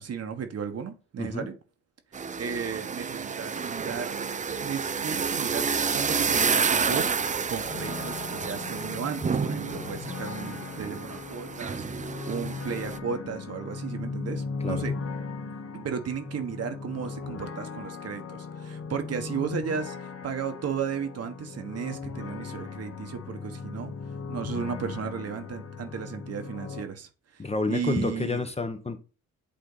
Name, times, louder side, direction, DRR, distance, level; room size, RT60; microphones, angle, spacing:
voice 1, 0.0-1.5 2.4-4.2 4.6-14.9 15.7-23.9 24.3-28.4, right 7 dB, 55° right, 1.3 m, -35 dB
sound 1, 2.1-13.0, right 5 dB, 25° right, 0.5 m, -30 dB
sound 2, 7.6-26.8, left 4 dB, 50° left, 1.2 m, -37 dB
voice 2, 27.4-29.0, left 3 dB, 20° left, 1.1 m, -29 dB
8.6 x 3.4 x 4.0 m
cardioid pair, 90°, 30 cm